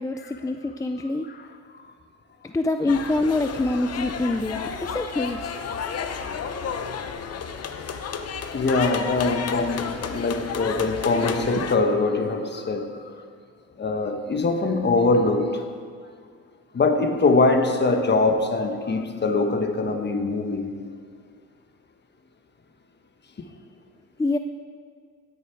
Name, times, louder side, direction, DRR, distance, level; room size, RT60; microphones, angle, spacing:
voice 1, 0.0-1.3 2.4-5.7 24.2-24.4, left 2 dB, 10° left, 0.4 m, -25 dB
sound 1, 2.9-11.8, left 6 dB, 55° left, 0.9 m, -32 dB
voice 2, 8.5-13.1 13.8-15.6 16.7-20.7, left 3 dB, 35° left, 1.2 m, -23 dB
17.5 x 6.9 x 4.6 m
cardioid pair, 90°, 30 cm